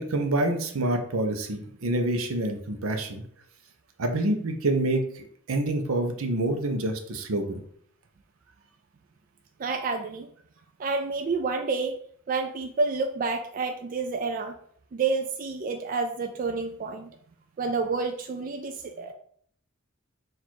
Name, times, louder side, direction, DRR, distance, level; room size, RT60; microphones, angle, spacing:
voice 1, 0.0-3.2 4.0-7.6, right 1 dB, 80° right, 5 dB, 0.7 m, -27 dB
voice 2, 9.6-10.3 10.8-12.0 12.3-14.6 14.9-17.1 17.6-19.1, right 4 dB, 40° right, 5 dB, 0.3 m, -29 dB
4.2 x 2.5 x 4.5 m, 0.63 s
head